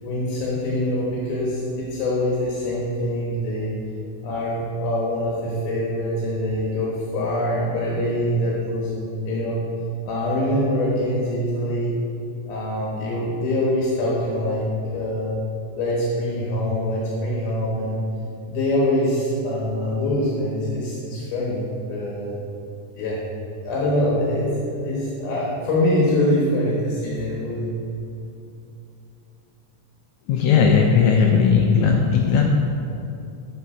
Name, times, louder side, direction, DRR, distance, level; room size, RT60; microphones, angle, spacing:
voice 1, 0.0-3.7 4.2-9.6 10.1-11.9 12.4-15.4 15.7-18.0 18.5-21.6 21.9-22.4 22.9-23.2 23.6-24.5 24.8-27.8, left 1 dB, 70° left, -5 dB, 2.7 m, -24 dB
voice 2, 30.3-32.5, left 6 dB, 85° left, 1 dB, 1.6 m, -17 dB
10.5 x 5.6 x 4.4 m, 2.7 s
omnidirectional pair, 3.9 m